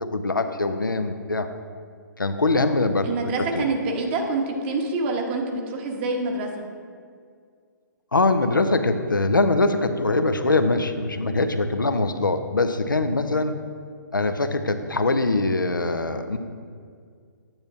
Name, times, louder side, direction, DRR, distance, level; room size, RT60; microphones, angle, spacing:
voice 1, 0.1-1.5 2.2-3.7 8.1-13.5 14.1-16.4, left 2 dB, 85° left, 8 dB, 0.6 m, -23 dB
voice 2, 3.0-6.5, right 3 dB, 35° right, 1 dB, 1.1 m, -26 dB
8.8 x 8.8 x 2.7 m, 2.1 s
figure-of-eight pair, 130°, 11 cm